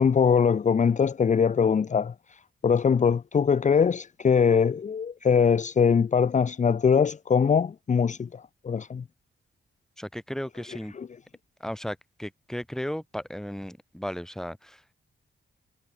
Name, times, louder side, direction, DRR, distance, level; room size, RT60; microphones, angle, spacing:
voice 1, 0.0-9.0 10.9-11.1, left 6 dB, 35° left, 0.8 m, -22 dB
voice 2, 10.0-10.9 11.6-14.9, equal, ahead, 5.0 m, -35 dB
wide cardioid pair, 180°, 21 cm